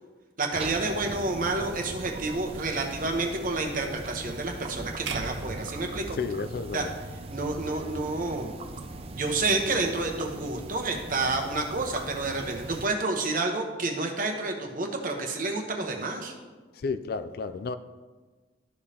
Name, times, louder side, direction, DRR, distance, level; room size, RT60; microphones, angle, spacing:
voice 1, 0.4-6.2 6.7-6.9 7.3-8.5 9.1-16.3, right 3 dB, 45° right, 3 dB, 1.0 m, -29 dB
sound 1, 0.5-12.9, right 2 dB, 30° right, 0.4 m, -40 dB
sound 2, 5.1-7.3, right 5 dB, 75° right, 0.6 m, -39 dB
voice 2, 6.2-7.0 16.8-17.8, left 4 dB, 55° left, 12 dB, 0.3 m, -31 dB
12.5 x 5.1 x 2.8 m, 1.3 s
head